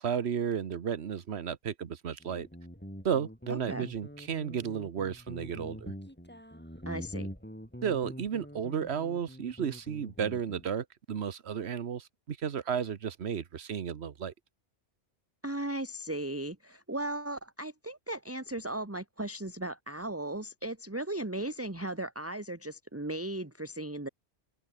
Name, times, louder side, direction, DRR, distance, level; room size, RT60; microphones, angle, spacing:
voice 1, 0.0-2.5 3.0-5.9 7.8-14.3, right 7 dB, 75° right, 1.3 m, -33 dB
Guitar, 2.2-10.7, equal, 10° left, 5.8 m, -44 dB
voice 2, 3.5-3.9 6.8-7.3 15.4-24.1, right 1 dB, 15° right, 1.6 m, -36 dB
open air
omnidirectional pair, 1.1 m